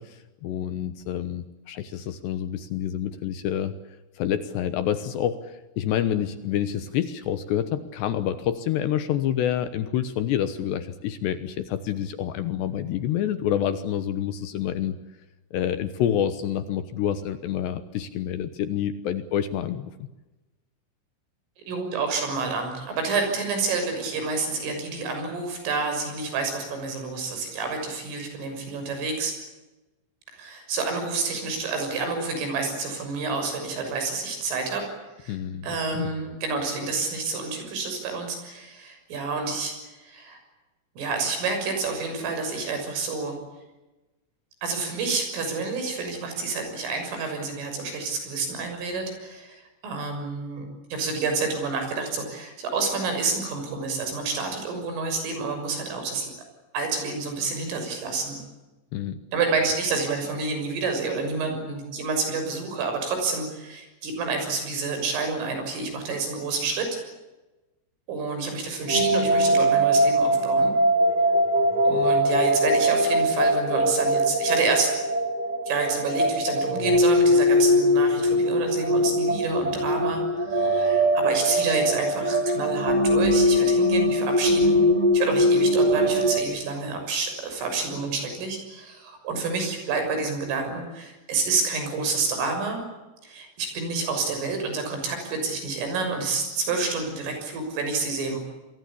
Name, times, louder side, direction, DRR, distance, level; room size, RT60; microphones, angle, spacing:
voice 1, 0.0-3.8 4.2-15.0 15.5-20.1 35.3-36.1 58.9-59.2, left 10 dB, 70° left, 11 dB, 2.9 m, -28 dB
voice 2, 21.7-29.3 30.3-34.9 35.2-35.3 35.6-39.8 40.0-40.4 41.0-43.4 44.6-56.3 56.7-58.4 59.3-66.9 68.1-70.7 71.9-75.0 75.7-84.8 85.1-92.8 93.2-98.4, right 4 dB, 75° right, 5 dB, 9.0 m, -29 dB
sound 1, 68.9-86.4, equal, 10° right, 2.2 m, -21 dB
27.5 x 22.5 x 8.6 m, 1.1 s
omnidirectional pair, 5.8 m